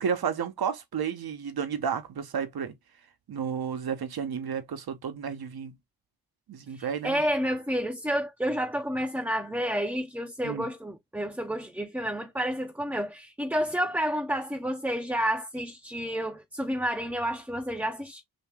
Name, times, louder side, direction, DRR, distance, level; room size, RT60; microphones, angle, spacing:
voice 1, 0.0-2.7 3.3-5.8 6.5-7.2 10.4-10.7, right 7 dB, 70° right, 0.9 m, -32 dB
voice 2, 6.8-18.2, equal, 5° right, 0.5 m, -30 dB
2.8 x 2.8 x 3.3 m
cardioid pair, 60°, 39 cm